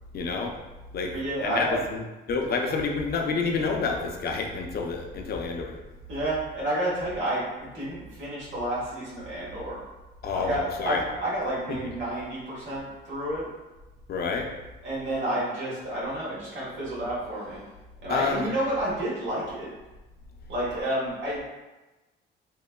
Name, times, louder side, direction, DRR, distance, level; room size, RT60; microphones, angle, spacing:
voice 1, 0.1-0.5 0.9-1.1 1.4-5.8 10.2-11.0 14.1-14.5 18.1-18.4, left 4 dB, 50° left, 2 dB, 0.4 m, -28 dB
voice 2, 1.1-1.8 6.1-9.8 10.4-13.5 14.8-17.6 18.0-19.7 20.5-21.4, right 1 dB, 75° right, -7 dB, 1.3 m, -30 dB
2.9 x 2.1 x 2.2 m, 1.1 s
cardioid pair, 90°, 20 cm